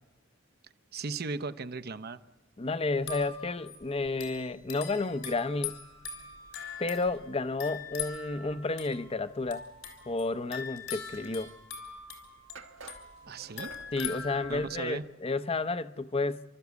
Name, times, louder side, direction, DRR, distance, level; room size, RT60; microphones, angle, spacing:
voice 1, 0.9-2.2 13.3-13.7 14.5-15.0, right 4 dB, 55° right, 0.7 m, -36 dB
voice 2, 2.6-5.8 6.8-9.6 10.1-11.5 13.9-16.4, left 3 dB, 30° left, 0.7 m, -31 dB
sound 1, 2.9-14.9, left 7 dB, 75° left, 4.5 m, -42 dB
sound 2, 11.7-11.8 12.6-14.2, right 4 dB, 80° right, 1.5 m, -48 dB
29.5 x 13.0 x 8.2 m
head